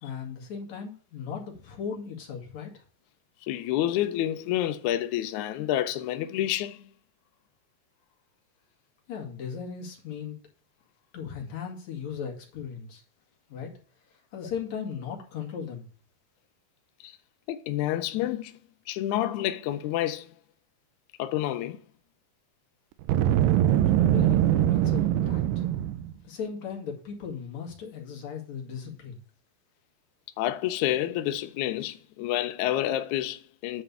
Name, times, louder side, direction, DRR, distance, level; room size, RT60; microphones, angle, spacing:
voice 1, 0.0-2.8 9.1-10.3 11.1-13.0 13.5-13.7 14.3-15.8 23.7-25.4 26.2-29.2, left 6 dB, 60° left, 3.2 m, -37 dB
voice 2, 3.5-6.8 17.0-17.1 17.5-18.5 18.9-20.3 21.2-21.8 30.4-33.8, left 13 dB, 75° left, 1.9 m, -29 dB
Boom, 23.0-26.1, right 11 dB, 90° right, 2.3 m, -23 dB
9.9 x 3.3 x 6.7 m
omnidirectional pair, 3.9 m